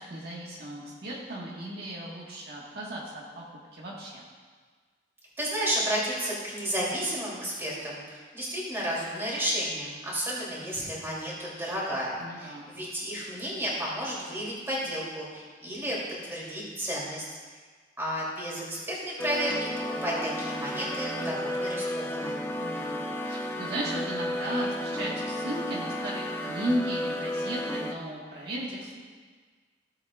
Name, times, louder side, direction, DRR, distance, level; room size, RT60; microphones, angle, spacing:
voice 1, 0.0-3.4 3.7-4.2 12.2-12.7 22.6-29.0, right 1 dB, 60° right, -5 dB, 1.5 m, -35 dB
voice 2, 5.4-17.3 18.0-19.7 20.0-22.4, equal, 15° right, -6 dB, 2.9 m, -32 dB
sound 1, 19.2-27.9, left 1 dB, 15° left, 0.6 m, -33 dB
16.0 x 7.7 x 2.4 m, 1.5 s
head